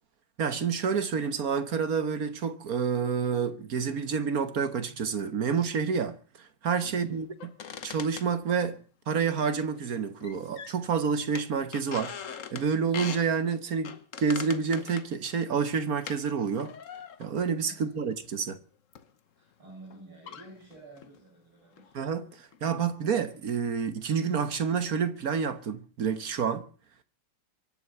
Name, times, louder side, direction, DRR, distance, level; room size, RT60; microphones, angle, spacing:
voice 1, 0.4-7.3 7.8-16.7 17.2-18.6 21.9-26.7, right 6 dB, 50° right, 1.4 m, -29 dB
voice 2, 6.8-7.2 17.6-17.9 19.4-21.9, right 2 dB, 70° right, 7.0 m, -50 dB
sound 1, 7.4-8.8 9.4-9.9 10.2-11.0 11.3-13.3 13.8-16.2 16.6-17.4 18.1-18.3 18.9-19.1 19.9-20.0 20.3-21.2 21.8-21.9 22.3-22.8 23.1-23.6, left 7 dB, 50° left, 1.0 m, -42 dB
24.0 x 8.0 x 6.9 m
omnidirectional pair, 2.4 m